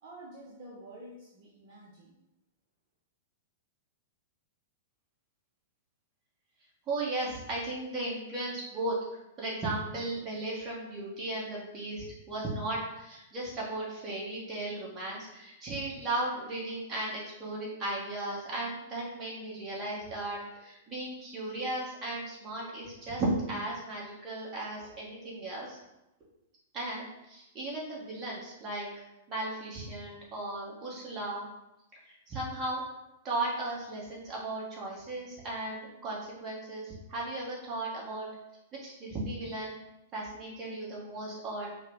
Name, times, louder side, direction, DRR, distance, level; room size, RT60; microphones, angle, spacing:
voice 1, 0.0-2.2, right 1 dB, 45° right, -5 dB, 0.8 m, -49 dB
voice 2, 6.9-9.0 9.4-25.8 26.7-31.4 32.0-32.8 33.2-38.3 38.8-39.7 40.1-41.7, right 2 dB, 25° right, -5 dB, 1.4 m, -36 dB
5.4 x 2.2 x 3.6 m, 0.93 s
figure-of-eight pair, 100°, 0 cm